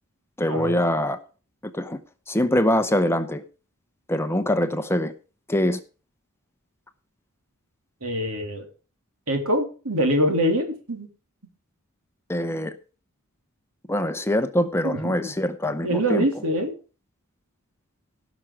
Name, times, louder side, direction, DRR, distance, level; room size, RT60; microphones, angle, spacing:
voice 1, 0.4-1.2 1.7-2.0 2.3-3.4 4.1-5.1 5.5-5.8 12.3-12.7 13.9-16.3, left 1 dB, 10° left, 10 dB, 0.7 m, -23 dB
voice 2, 8.0-8.7 9.3-11.1 14.8-15.3 15.8-16.7, equal, 70° right, 4 dB, 3.2 m, -24 dB
17.0 x 6.1 x 4.9 m, 0.36 s
head